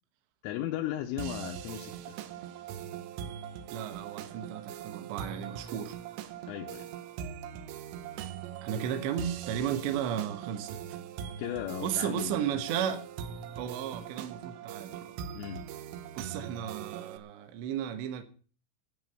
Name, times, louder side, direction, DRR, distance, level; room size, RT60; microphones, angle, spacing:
voice 1, 0.4-2.2 6.5-6.9 11.4-12.6 15.3-15.6, left 11 dB, 85° left, 3.6 m, -36 dB
sound 1, 1.2-17.2, right 9 dB, 90° right, 3.6 m, -41 dB
voice 2, 3.7-6.0 8.6-11.0 11.8-13.1 13.6-15.1 16.2-18.2, right 9 dB, 75° right, 3.4 m, -34 dB
12.0 x 7.3 x 9.4 m
omnidirectional pair, 5.6 m